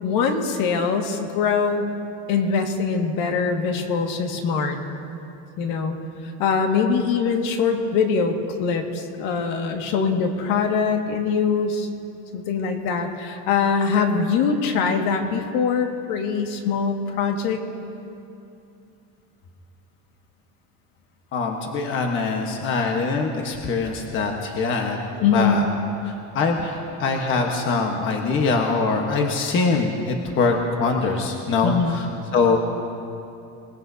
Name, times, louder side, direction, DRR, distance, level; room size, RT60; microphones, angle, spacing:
voice 1, 0.0-1.9 2.3-4.8 5.6-6.0 6.2-11.9 12.3-17.6 25.2-25.6 31.6-32.0, left 5 dB, 65° left, 3 dB, 1.9 m, -23 dB
voice 2, 21.3-25.0 25.3-25.6 26.0-32.1 32.3-32.6, left 4 dB, 35° left, 2 dB, 1.2 m, -23 dB
27.0 x 19.0 x 2.7 m, 2.7 s
cardioid pair, 170°, 36 cm